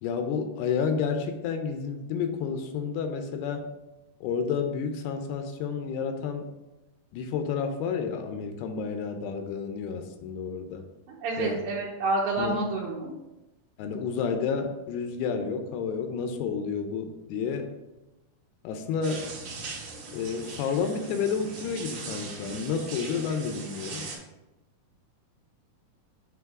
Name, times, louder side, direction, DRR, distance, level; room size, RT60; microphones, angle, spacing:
voice 1, 0.0-3.7 4.2-6.5 7.1-10.9 11.4-11.6 12.4-12.6 13.8-17.7 18.6-19.3 20.1-24.1, left 6 dB, 80° left, 6 dB, 2.5 m, -30 dB
voice 2, 11.1-13.1, right 3 dB, 85° right, -5 dB, 2.8 m, -29 dB
sound 1, 19.0-24.2, right 3 dB, 60° right, 2.1 m, -40 dB
7.8 x 2.7 x 4.7 m, 1.0 s
omnidirectional pair, 4.7 m